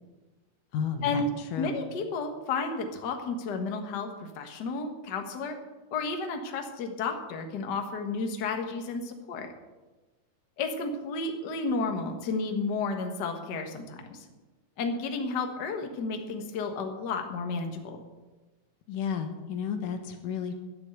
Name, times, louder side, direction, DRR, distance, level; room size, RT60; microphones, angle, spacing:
voice 1, 0.7-1.8 18.9-20.6, left 6 dB, 85° left, 6 dB, 2.9 m, -32 dB
voice 2, 1.6-5.6 5.9-9.5 10.6-14.2 14.8-18.0, left 4 dB, 45° left, 4 dB, 1.5 m, -32 dB
10.5 x 10.0 x 8.0 m, 1.2 s
omnidirectional pair, 3.6 m